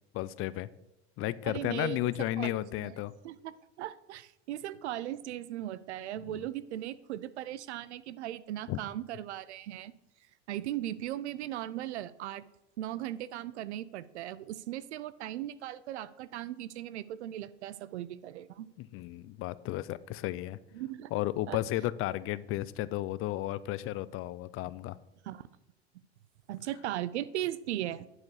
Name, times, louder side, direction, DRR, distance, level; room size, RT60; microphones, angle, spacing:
voice 1, 0.1-0.7 1.2-3.1 6.3-6.4 8.7-8.8 18.8-20.6 21.1-25.0, left 15 dB, 40° left, 17 dB, 0.4 m, -33 dB
voice 2, 1.4-2.9 3.2-9.9 10.5-12.4 12.8-18.7 20.7-21.1 21.5-21.6 25.2-25.5 26.5-28.1, right 13 dB, 85° right, 17 dB, 0.5 m, -38 dB
9.7 x 4.7 x 4.7 m, 0.93 s
hypercardioid pair, 85°, 33 cm